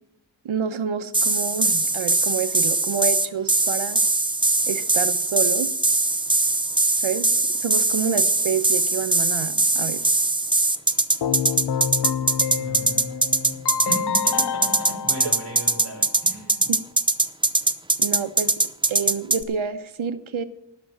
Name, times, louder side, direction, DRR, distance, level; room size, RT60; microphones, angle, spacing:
voice 1, 0.4-4.0 4.7-5.7 7.0-7.3 7.6-10.0 16.7-16.8 18.0-18.5 18.9-20.4, right 6 dB, 80° right, 11 dB, 1.0 m, -28 dB
sound 1, 1.1-19.4, right 2 dB, 10° right, 0.6 m, -21 dB
Keyboard (musical), 11.2-16.2, left 8 dB, 55° left, 0.7 m, -29 dB
voice 2, 12.5-13.6 13.8-16.7, right 1 dB, 30° right, -5 dB, 5.8 m, -36 dB
12.0 x 6.2 x 9.1 m, 0.82 s
wide cardioid pair, 80°, 47 cm